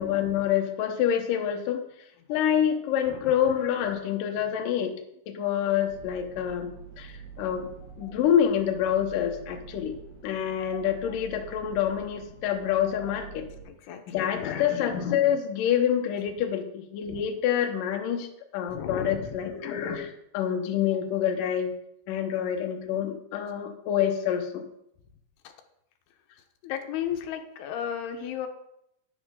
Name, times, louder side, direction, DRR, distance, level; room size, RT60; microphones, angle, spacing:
voice 1, 0.0-1.8 2.3-4.9 5.3-7.7 8.0-10.0 10.2-13.5 14.1-18.3 18.5-21.7 22.1-24.6, left 9 dB, 70° left, 4 dB, 2.4 m, -27 dB
voice 2, 3.1-3.4 13.7-14.7 18.7-19.4 26.6-28.5, left 9 dB, 90° left, 4 dB, 3.1 m, -34 dB
sound 1, 5.9-13.6, right 6 dB, 75° right, 4.8 m, -46 dB
11.0 x 10.5 x 3.8 m, 0.78 s
omnidirectional pair, 4.5 m